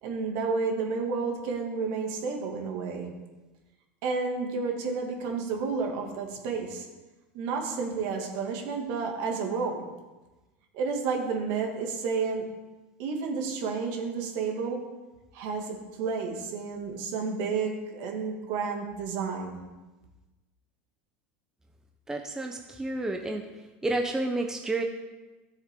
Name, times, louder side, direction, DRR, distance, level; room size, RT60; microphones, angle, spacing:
voice 1, 0.0-3.1 4.0-6.9 7.3-9.9 10.7-12.4 13.0-14.8 15.3-19.6, right 4 dB, 60° right, 2 dB, 2.2 m, -31 dB
voice 2, 22.1-23.4 23.8-24.8, right 2 dB, 10° right, 3 dB, 0.8 m, -30 dB
14.0 x 7.2 x 3.8 m, 1.2 s
supercardioid pair, 135°, 7 cm